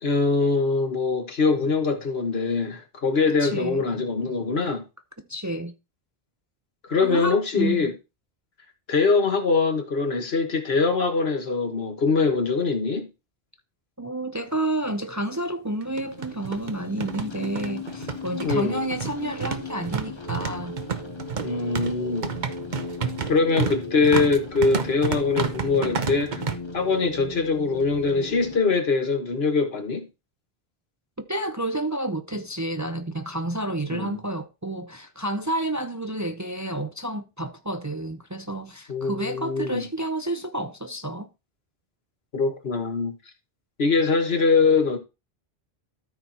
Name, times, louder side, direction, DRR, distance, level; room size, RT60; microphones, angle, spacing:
voice 1, 0.0-4.8 6.8-7.9 8.9-13.1 18.4-18.8 21.4-22.3 23.3-26.4 26.7-30.0 33.9-34.2 38.9-39.8 42.3-43.1 43.8-45.0, left 4 dB, 80° left, 1.7 m, -23 dB
voice 2, 3.3-3.8 5.3-5.8 7.0-7.9 14.0-20.8 31.3-41.3, right 1 dB, 20° right, 0.5 m, -30 dB
sound 1, 14.5-14.6 14.9-15.0 15.8-26.5, right 6 dB, 50° right, 1.0 m, -30 dB
sound 2, 15.8-28.6, left 3 dB, 30° left, 1.0 m, -37 dB
13.0 x 4.4 x 4.3 m
omnidirectional pair, 1.0 m